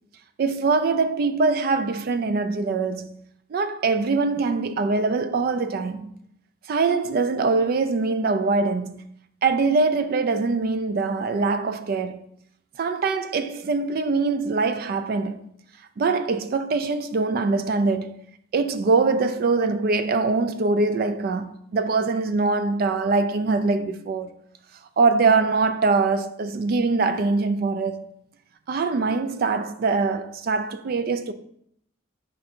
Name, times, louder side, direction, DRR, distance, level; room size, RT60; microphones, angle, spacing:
voice 1, 0.4-3.2 3.5-6.1 6.7-9.1 9.4-12.2 12.8-15.4 16.0-18.2 18.5-24.3 25.0-28.1 28.7-31.3, right 4 dB, 50° right, 0.3 m, -23 dB
4.8 x 2.6 x 4.3 m
head